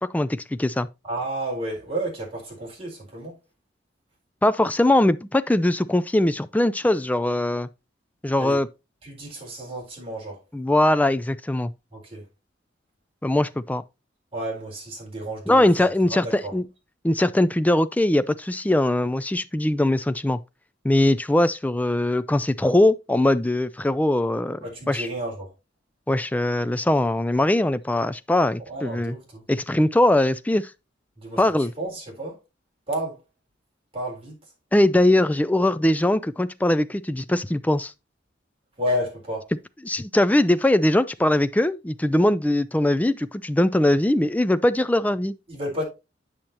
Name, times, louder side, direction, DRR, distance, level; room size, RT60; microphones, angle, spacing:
voice 1, 0.0-0.9 4.4-7.7 8.2-8.7 10.5-11.7 13.2-13.8 15.5-16.6 17.0-20.4 20.8-24.6 24.9-25.1 26.1-29.2 29.5-30.7 31.4-31.7 34.7-37.9 39.8-45.3, left 1 dB, 10° left, 0.3 m, -21 dB
voice 2, 1.0-3.4 8.4-8.6 9.0-10.4 11.9-12.2 14.3-15.7 16.1-16.5 24.6-25.5 28.7-29.4 31.2-31.4 31.8-32.4 32.9-33.2 33.9-34.4 38.8-39.5 45.5-45.8, right 1 dB, 30° right, 4.0 m, -31 dB
8.8 x 6.4 x 2.9 m
head